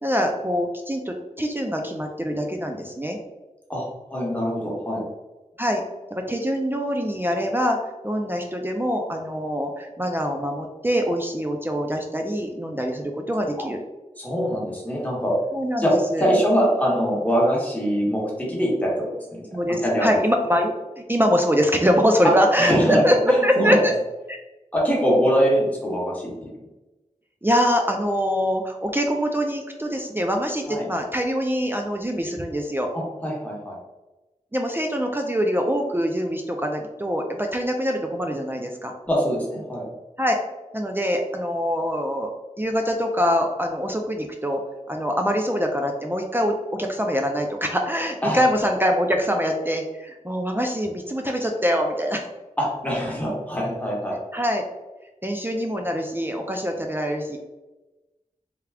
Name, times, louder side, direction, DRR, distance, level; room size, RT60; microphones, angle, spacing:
voice 1, 0.0-3.2 5.6-5.8 6.1-7.8 8.0-13.8 15.5-15.8 16.1-16.3 19.5-23.2 23.4-23.9 24.3-24.4 27.4-32.9 34.5-38.9 40.2-40.4 40.7-42.3 42.6-44.6 44.9-52.2 54.3-54.6 55.2-57.4, equal, 15° right, 2 dB, 0.4 m, -24 dB
voice 2, 4.1-5.0 13.6-13.7 14.2-15.3 15.8-19.5 19.8-20.1 22.2-22.3 22.6-23.8 24.7-26.3 30.7-30.8 32.9-33.8 39.1-39.9 48.2-48.4 52.6-54.2, equal, 10° left, -5 dB, 1.2 m, -23 dB
3.5 x 2.3 x 3.3 m, 1.1 s
wide cardioid pair, 65°, 13 cm